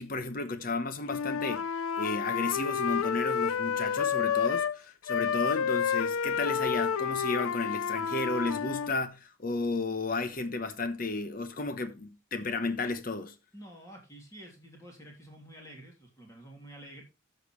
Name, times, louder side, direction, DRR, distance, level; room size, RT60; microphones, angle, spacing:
voice 1, 0.0-1.7 2.0-13.3, left 3 dB, 40° left, 1.0 m, -33 dB
Wind instrument woodwind instrument, 1.0-4.8 5.1-8.9, left 7 dB, 90° left, 0.6 m, -30 dB
voice 2, 13.5-17.0, right 1 dB, 15° left, 2.9 m, -49 dB
12.5 x 6.6 x 3.2 m
head